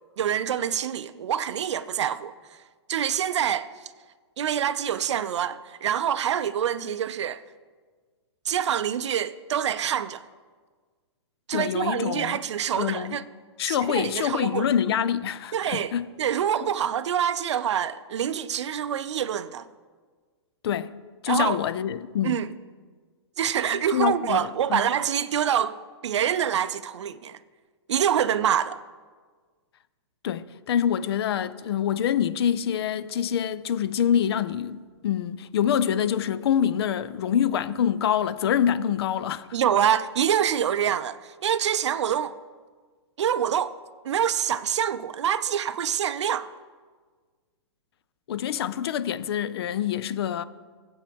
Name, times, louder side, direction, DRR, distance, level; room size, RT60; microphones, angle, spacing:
voice 1, 0.2-2.6 2.9-3.7 4.4-7.4 8.4-10.2 11.5-13.2 13.6-14.7 15.5-15.9 16.2-19.7 21.3-21.6 22.2-22.5 23.4-27.4 27.9-28.8 39.5-42.3 43.2-43.8 44.0-46.5, right 9 dB, 85° right, 0.4 m, -26 dB
voice 2, 11.5-12.4 12.8-13.2 13.6-16.1 16.6-16.7 20.6-21.0 21.2-22.4 23.9-24.8 30.2-39.5 48.3-50.4, left 9 dB, 65° left, 0.5 m, -26 dB
14.5 x 7.9 x 3.4 m
hypercardioid pair, 145°, 14 cm